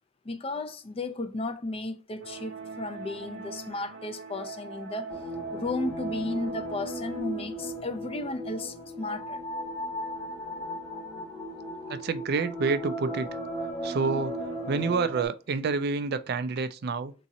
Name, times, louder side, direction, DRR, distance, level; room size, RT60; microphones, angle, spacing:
voice 1, 0.2-5.1 5.5-9.4, left 2 dB, 30° left, 0.5 m, -34 dB
sound 1, 2.2-7.2, right 4 dB, 80° right, 0.8 m, -41 dB
sound 2, 5.1-15.3, equal, 15° left, 1.1 m, -36 dB
voice 2, 11.9-13.3 13.8-17.1, right 4 dB, 55° right, 0.4 m, -28 dB
3.7 x 2.9 x 4.0 m
head